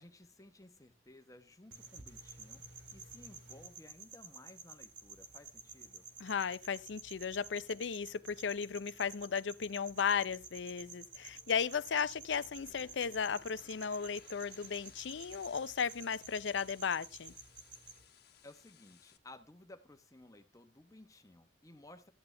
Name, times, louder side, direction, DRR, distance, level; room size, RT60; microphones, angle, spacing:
voice 1, 0.0-6.1 18.4-22.1, left 1 dB, 20° left, 1.1 m, -57 dB
sound 1, 1.7-18.0, right 5 dB, 85° right, 2.1 m, -52 dB
voice 2, 6.2-17.3, left 6 dB, 85° left, 0.5 m, -35 dB
sound 2, 12.6-19.2, left 6 dB, 60° left, 1.2 m, -62 dB
13.5 x 8.9 x 3.3 m
head